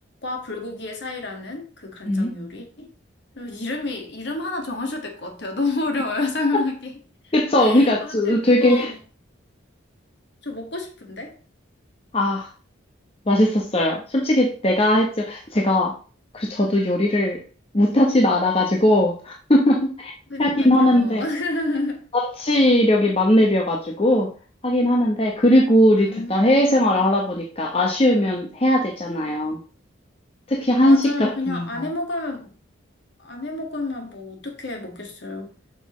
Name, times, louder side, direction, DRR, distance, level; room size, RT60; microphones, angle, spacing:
voice 1, 0.2-2.9 3.4-7.0 7.2-9.0 10.4-11.3 20.3-22.0 25.9-26.5 30.8-32.5 33.2-35.5, left 2 dB, 55° left, 1.8 m, -30 dB
voice 2, 7.3-8.9 12.1-12.5 13.3-15.9 16.3-17.4 17.7-20.1 20.4-21.2 22.1-24.3 24.6-29.6 30.5-31.9, left 1 dB, 30° left, 0.9 m, -19 dB
7.7 x 6.3 x 3.1 m
head